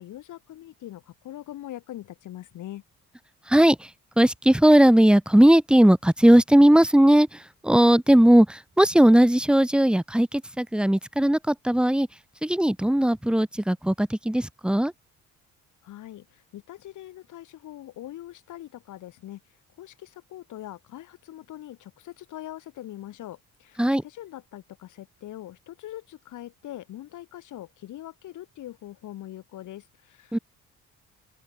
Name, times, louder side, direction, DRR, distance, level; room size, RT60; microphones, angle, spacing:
voice 1, 0.0-2.8 15.8-30.4, left 13 dB, 80° left, 3.3 m, -42 dB
voice 2, 4.2-7.3 7.6-12.1 12.4-14.9 23.8-24.0 30.3-30.4, right 1 dB, 5° right, 1.1 m, -18 dB
open air
cardioid pair, 90°, 30 cm